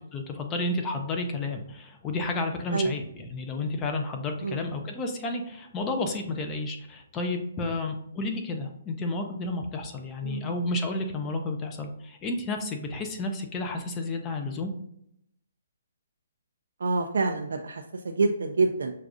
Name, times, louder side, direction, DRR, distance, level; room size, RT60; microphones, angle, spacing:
voice 1, 0.1-14.7, left 2 dB, 15° left, 4 dB, 0.5 m, -31 dB
voice 2, 16.8-18.9, right 3 dB, 80° right, 3 dB, 0.4 m, -27 dB
6.3 x 2.4 x 2.5 m, 0.75 s
hypercardioid pair, 155°, 0 cm